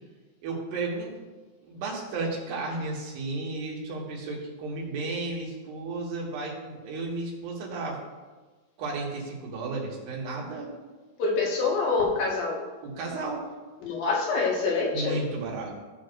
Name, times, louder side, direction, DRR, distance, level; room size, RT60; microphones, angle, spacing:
voice 1, 0.4-1.1 1.6-8.0 8.8-10.7 12.8-13.5 14.9-15.8, right 3 dB, 85° right, -3 dB, 3.6 m, -33 dB
voice 2, 11.2-12.6 13.8-15.2, left 4 dB, 90° left, -3 dB, 3.5 m, -26 dB
17.0 x 6.4 x 2.5 m, 1.3 s
omnidirectional pair, 4.0 m